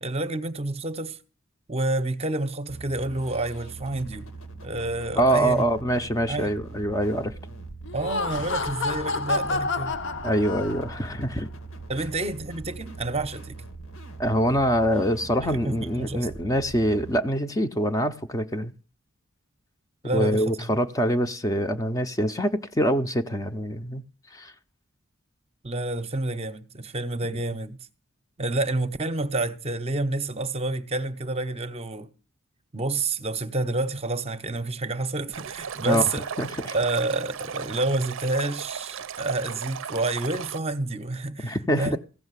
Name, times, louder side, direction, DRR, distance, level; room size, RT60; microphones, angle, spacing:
voice 1, 0.0-1.2 1.7-4.3 4.6-5.6 6.3-6.5 7.9-9.9 11.9-13.6 15.4-16.3 20.0-20.4 25.6-27.8 28.4-32.1 32.7-36.3 36.7-42.0, right 2 dB, 30° right, 0.8 m, -29 dB
sound 1, 2.7-17.2, right 3 dB, 90° left, 2.3 m, -42 dB
voice 2, 5.2-7.3 10.2-11.5 14.2-18.7 20.1-24.0 24.3-24.5 35.8-36.1 36.4-36.7 41.4-42.0, equal, 15° left, 0.6 m, -24 dB
Laughter, 7.8-11.1, left 3 dB, 60° left, 0.9 m, -29 dB
Stream, 35.3-40.6, right 7 dB, 65° right, 0.5 m, -36 dB
15.5 x 6.6 x 8.1 m
head